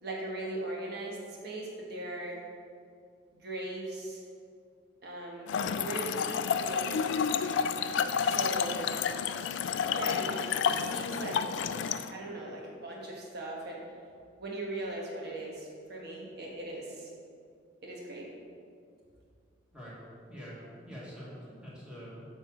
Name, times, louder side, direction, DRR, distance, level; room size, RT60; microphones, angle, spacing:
voice 1, 0.0-2.4 3.3-4.2 5.0-7.1 8.2-8.9 9.8-11.5 12.1-13.8 14.4-17.1 17.8-18.3, right 2 dB, 60° right, -3 dB, 1.5 m, -39 dB
Trickle dribble / Fill (with liquid), 5.5-12.1, left 7 dB, 75° left, 0.3 m, -30 dB
voice 2, 20.3-22.3, equal, 5° right, -8 dB, 1.8 m, -45 dB
7.0 x 3.7 x 6.2 m, 2.3 s
head